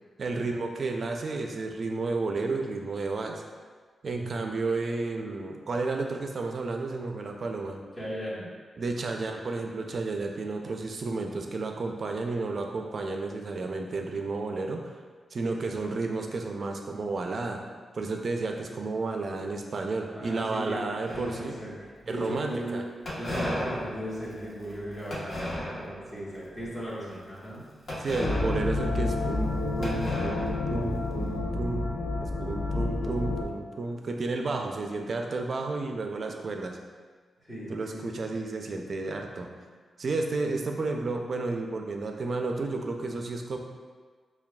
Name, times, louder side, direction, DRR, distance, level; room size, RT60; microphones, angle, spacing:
voice 1, 0.2-3.4 4.0-7.8 8.8-15.0 15.3-17.6 17.9-21.5 22.1-22.8 28.0-31.9 32.2-36.8 37.7-39.5 40.0-43.6, right 3 dB, 55° right, 3 dB, 0.4 m, -32 dB
voice 2, 4.1-4.5 7.9-8.5 15.4-15.8 20.1-22.8 23.1-27.6 32.7-33.2 37.4-38.2, equal, 20° left, -9 dB, 1.5 m, -38 dB
sound 1, 21.0-21.8 23.0-26.1 26.6-26.9 27.9-29.5 29.8-31.2, equal, 50° left, 1.0 m, -36 dB
sound 2, 28.2-33.4, left 2 dB, 70° left, 0.5 m, -29 dB
5.8 x 2.3 x 2.2 m, 1.5 s
cardioid pair, 95°, 0 cm